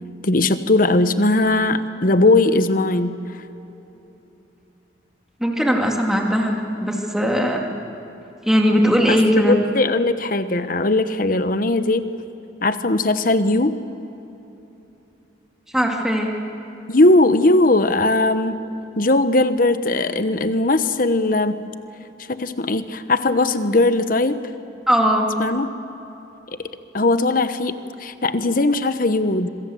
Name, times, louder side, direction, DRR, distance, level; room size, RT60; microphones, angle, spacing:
voice 1, 0.2-3.2 9.1-12.1 12.6-13.8 16.9-18.6 19.0-21.6 22.3-24.4 25.4-25.7 26.9-29.5, left 2 dB, 50° left, 11 dB, 1.1 m, -19 dB
voice 2, 5.4-7.7 8.4-9.6 15.7-16.3 24.9-25.3, equal, 5° right, 0 dB, 2.5 m, -19 dB
26.0 x 24.0 x 7.9 m, 3.0 s
head